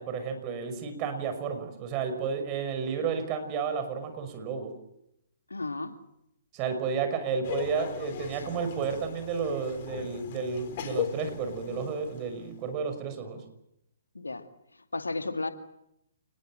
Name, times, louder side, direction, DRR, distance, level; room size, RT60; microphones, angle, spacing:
voice 1, 0.0-4.7 6.5-13.4, right 6 dB, 30° right, 8 dB, 6.0 m, -32 dB
voice 2, 5.5-6.0 14.1-14.5 14.9-15.5, left 3 dB, 85° left, 7 dB, 2.4 m, -33 dB
Laughter, 7.4-12.5, left 8 dB, 45° left, 4.2 m, -38 dB
28.5 x 20.5 x 7.7 m, 0.80 s
figure-of-eight pair, 130°, 0 cm